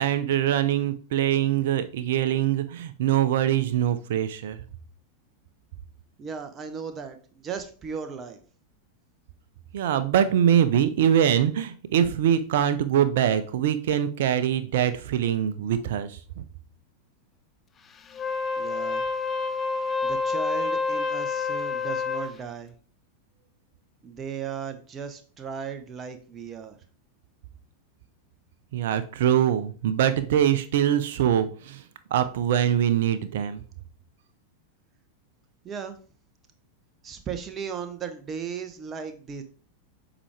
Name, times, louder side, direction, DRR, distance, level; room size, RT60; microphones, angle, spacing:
voice 1, 0.0-4.6 9.7-16.1 28.7-31.8 32.1-33.6, right 10 dB, 55° right, 12 dB, 0.7 m, -23 dB
voice 2, 6.2-8.4 18.6-19.1 20.0-22.8 24.0-26.8 35.6-36.0 37.0-39.4, right 6 dB, 25° right, 8 dB, 1.0 m, -36 dB
Wind instrument woodwind instrument, 18.1-22.4, left 4 dB, 20° left, 0.6 m, -28 dB
7.4 x 4.9 x 3.4 m, 0.40 s
figure-of-eight pair, 90°, 0 cm